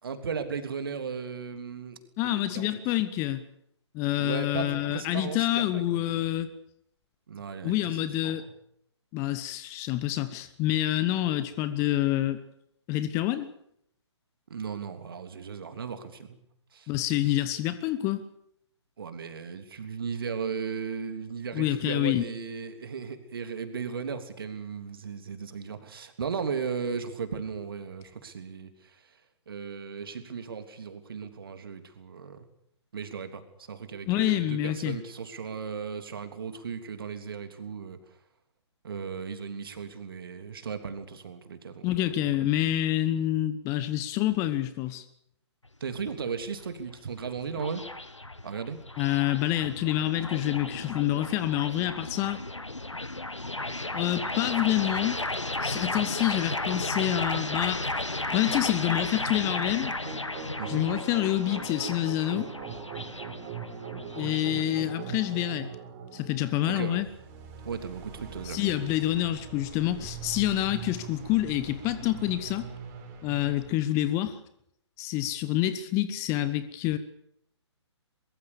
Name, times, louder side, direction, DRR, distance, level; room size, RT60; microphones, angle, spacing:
voice 1, 0.0-2.7 4.2-6.3 7.3-8.4 14.5-16.4 16.7-16.9 19.0-29.1 29.5-32.4 32.9-38.0 38.8-42.3 45.8-47.8 48.4-48.8 60.6-60.9 66.6-67.0 67.6-68.6, right 6 dB, 50° right, 8 dB, 3.2 m, -36 dB
voice 2, 2.2-3.4 3.9-6.5 7.6-8.4 9.1-12.4 12.9-13.5 16.9-18.2 21.5-22.2 34.1-35.0 41.8-45.0 49.0-52.4 53.9-55.2 55.6-59.9 60.7-62.5 64.1-65.7 66.1-67.1 68.4-72.7 73.2-74.4 75.0-77.0, left 14 dB, 20° left, 14 dB, 1.1 m, -27 dB
sound 1, 45.6-64.6, left 2 dB, 85° left, 1.6 m, -34 dB
sound 2, 60.0-73.7, right 6 dB, 25° right, 4.9 m, -41 dB
23.5 x 22.0 x 7.0 m, 0.72 s
figure-of-eight pair, 135°, 15 cm